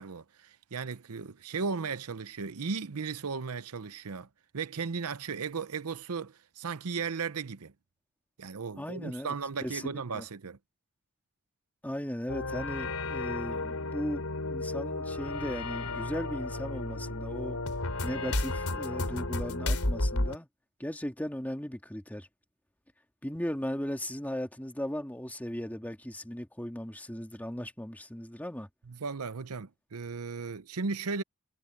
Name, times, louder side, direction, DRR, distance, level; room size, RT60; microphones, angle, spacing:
voice 1, 0.0-4.3 4.5-7.7 8.4-10.6 28.9-31.2, right 5 dB, 75° right, 0.7 m, -36 dB
voice 2, 8.8-9.3 9.6-10.2 11.8-17.6 18.0-20.5 20.8-22.3 23.2-28.7, equal, 5° left, 2.0 m, -37 dB
sound 1, 12.3-20.4, left 2 dB, 80° left, 3.4 m, -33 dB
head